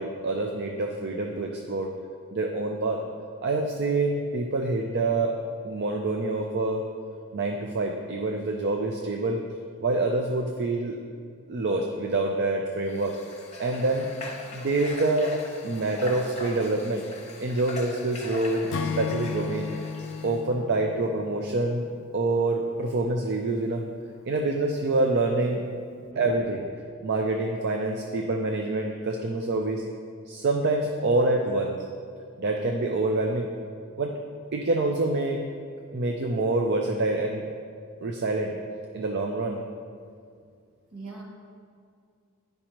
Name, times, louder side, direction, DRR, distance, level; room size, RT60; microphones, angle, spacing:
voice 1, 0.0-1.9 2.3-3.0 3.4-5.3 5.6-6.8 7.3-9.4 9.8-11.0 11.5-13.1 13.6-14.1 14.5-15.3 15.6-17.0 17.4-18.7 19.0-19.7 20.2-21.8 22.1-23.8 24.2-25.7 26.2-26.6 27.0-29.8 30.3-31.8 32.4-33.5 34.0-34.1 34.5-35.5 35.9-37.4 38.0-38.5 38.9-39.6, right 2 dB, 55° right, 2 dB, 0.5 m, -26 dB
Water / Water tap faucet, 12.9-20.4, left 3 dB, 30° left, 0.8 m, -41 dB
Acoustic guitar / Strum, 18.7-22.1, left 5 dB, 65° left, 0.4 m, -34 dB
voice 2, 26.0-26.3 40.9-41.2, right 3 dB, 70° right, -2 dB, 1.4 m, -41 dB
9.8 x 5.3 x 3.0 m, 2.2 s
head